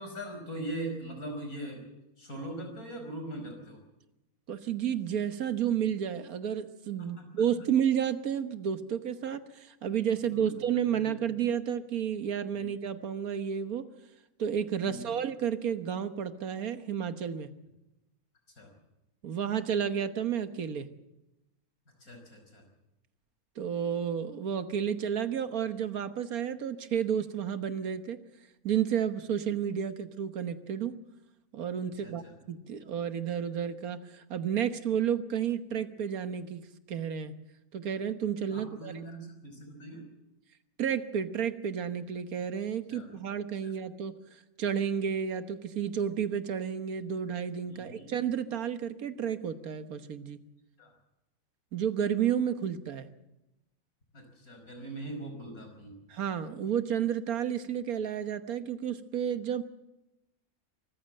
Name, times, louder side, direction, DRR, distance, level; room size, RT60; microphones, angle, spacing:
voice 1, 0.0-1.8 2.2-3.8 7.0-7.4 10.3-10.5 10.9-11.2 12.6-12.7 14.8-15.2 18.6-18.7 22.0-22.6 32.0-32.3 38.5-40.1 42.9-43.1 43.6-43.7 47.7-48.1 50.8-50.9 54.1-56.0, right 1 dB, 75° left, 4 dB, 5.6 m, -41 dB
voice 2, 4.5-13.9 14.4-17.5 19.2-20.9 23.6-28.2 28.6-31.0 31.5-37.3 37.7-39.0 40.8-50.4 51.7-53.1 56.1-59.6, right 8 dB, 75° right, 10 dB, 1.6 m, -31 dB
24.0 x 14.5 x 7.6 m, 0.96 s
omnidirectional pair, 1.5 m